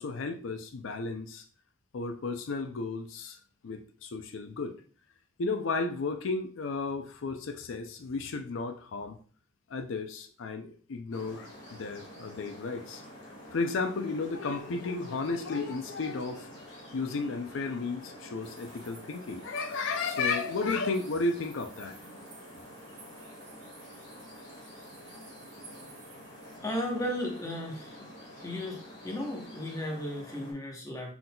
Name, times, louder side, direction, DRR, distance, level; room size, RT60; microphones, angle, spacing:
voice 1, 0.0-1.4 1.9-3.4 3.6-4.8 5.4-9.2 9.7-13.0 13.5-16.5 16.9-21.9, left 3 dB, 85° left, 7 dB, 0.5 m, -33 dB
sound 1, 11.1-30.5, equal, 60° left, 1.9 m, -48 dB
sound 2, 18.4-26.6, right 4 dB, 35° right, 1.4 m, -56 dB
voice 2, 26.6-28.1 28.4-31.1, left 1 dB, 15° left, 0 dB, 0.8 m, -35 dB
5.9 x 3.8 x 2.2 m, 0.42 s
head